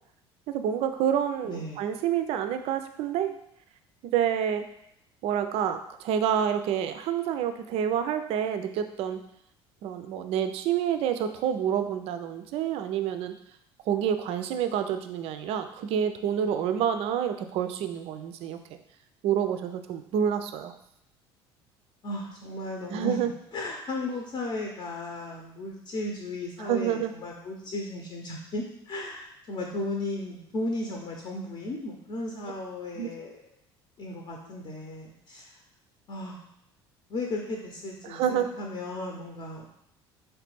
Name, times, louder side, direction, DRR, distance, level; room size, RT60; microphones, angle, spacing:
voice 1, 0.5-3.3 4.0-4.7 5.2-9.2 9.8-13.3 13.9-18.6 19.2-20.8 22.9-23.3 26.6-27.1 33.0-33.1 38.0-38.5, right 9 dB, 45° right, 8 dB, 0.4 m, -28 dB
voice 2, 1.4-1.8 22.0-23.2 23.5-33.4 34.0-35.5 36.1-36.4 37.1-39.7, left 2 dB, 35° left, 0 dB, 0.8 m, -35 dB
4.9 x 3.2 x 3.1 m, 0.76 s
figure-of-eight pair, 60°, 14 cm